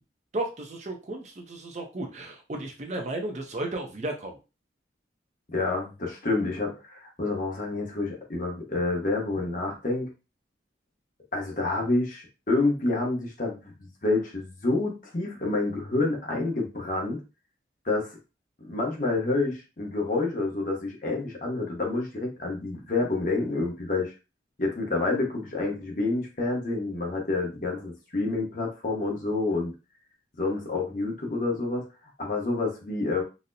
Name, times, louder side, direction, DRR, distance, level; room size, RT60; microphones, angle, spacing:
voice 1, 0.3-4.4, right 2 dB, 40° right, 3 dB, 0.6 m, -34 dB
voice 2, 5.5-10.1 11.3-17.2 17.8-18.1 18.6-24.1 24.6-29.7 30.4-31.9 32.2-33.2, left 2 dB, 45° left, 0 dB, 0.9 m, -28 dB
4.0 x 2.0 x 2.6 m, 0.30 s
head